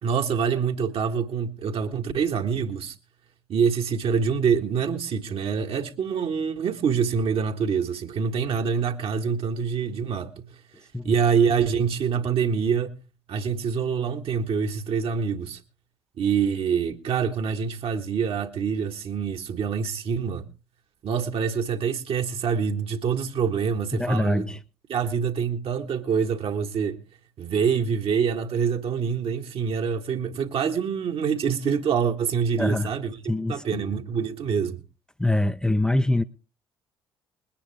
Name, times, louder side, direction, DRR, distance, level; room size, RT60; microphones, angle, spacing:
voice 1, 0.0-2.9 3.5-10.4 11.0-13.0 13.3-15.6 16.2-20.5 21.0-24.5 24.9-27.0 27.4-33.2 33.5-34.8, right 6 dB, 50° right, 1.6 m, -25 dB
voice 2, 23.9-24.6 32.6-32.9 33.3-33.8 35.2-36.2, left 1 dB, 5° left, 0.7 m, -24 dB
21.5 x 10.0 x 3.5 m
figure-of-eight pair, 50°, 12 cm